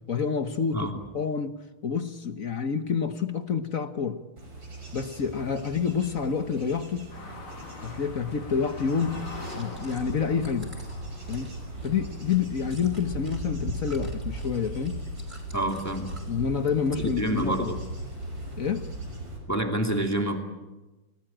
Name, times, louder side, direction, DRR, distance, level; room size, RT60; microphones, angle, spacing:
voice 1, 0.1-0.9 1.1-4.2 4.9-7.1 7.8-10.7 11.3-11.5 11.8-15.0 16.3-17.8 18.6-18.9, left 6 dB, 45° left, 1.3 m, -28 dB
Bird / Insect / Wind, 4.4-19.4, right 1 dB, 60° right, 6.9 m, -38 dB
sound 1, 7.1-16.2 16.6-16.7 17.2-18.9, left 2 dB, 80° left, 4.1 m, -46 dB
Chewing mastication, 9.3-13.4 13.7-16.3 16.7-17.5 17.8-18.7, right 1 dB, 20° right, 5.8 m, -51 dB
voice 2, 15.5-16.1 17.0-17.8 19.5-20.4, right 1 dB, 5° left, 2.5 m, -28 dB
29.5 x 19.5 x 8.8 m
omnidirectional pair, 2.4 m